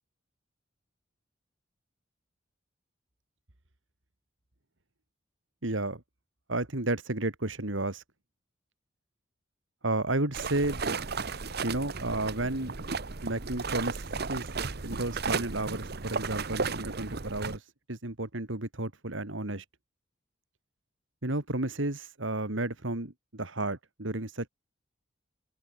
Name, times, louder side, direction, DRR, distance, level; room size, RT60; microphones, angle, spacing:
voice 1, 5.6-6.0 6.5-8.0 9.8-10.8 11.6-12.7 13.2-14.0 14.3-14.5 14.8-19.6 21.2-24.5, right 2 dB, 75° right, 2.6 m, -32 dB
sound 1, 10.3-17.6, right 4 dB, 55° right, 1.2 m, -34 dB
head